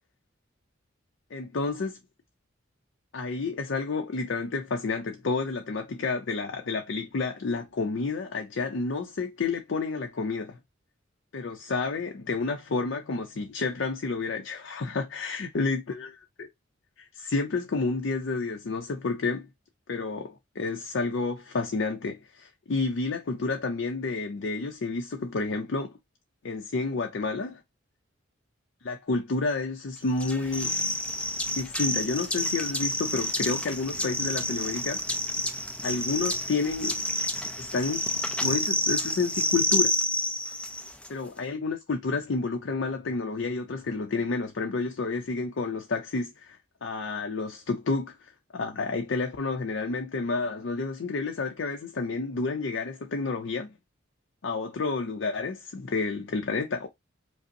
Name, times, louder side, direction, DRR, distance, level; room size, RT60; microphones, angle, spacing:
voice 1, 1.3-2.0 3.1-10.6 11.3-16.1 16.4-16.5 17.0-19.5 19.9-26.0 26.4-27.6 28.8-30.7 31.5-35.2 35.8-37.0 37.6-38.0 38.4-39.9 41.1-53.7 54.4-56.9, left 4 dB, 60° left, 0.5 m, -30 dB
sound 1, 30.2-41.1, left 1 dB, 5° left, 0.4 m, -29 dB
5.0 x 2.0 x 2.6 m
head